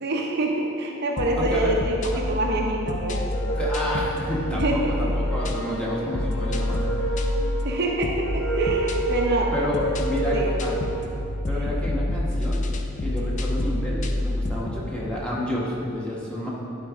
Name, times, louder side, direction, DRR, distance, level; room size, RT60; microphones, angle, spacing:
voice 1, 0.0-3.2 4.5-5.1 7.6-9.5 10.2-10.5 11.6-11.7, right 2 dB, 50° right, 0 dB, 0.7 m, -26 dB
sound 1, 1.2-14.9, left 1 dB, 35° left, 0.4 m, -28 dB
voice 2, 1.3-1.7 2.1-2.2 3.5-7.1 9.5-10.4 10.6-10.7 11.5-12.6 13.0-16.5, left 1 dB, 5° left, -6 dB, 1.2 m, -30 dB
sound 2, 3.1-11.2, right 2 dB, 85° left, 1.0 m, -31 dB
10.5 x 4.8 x 3.5 m, 2.7 s
head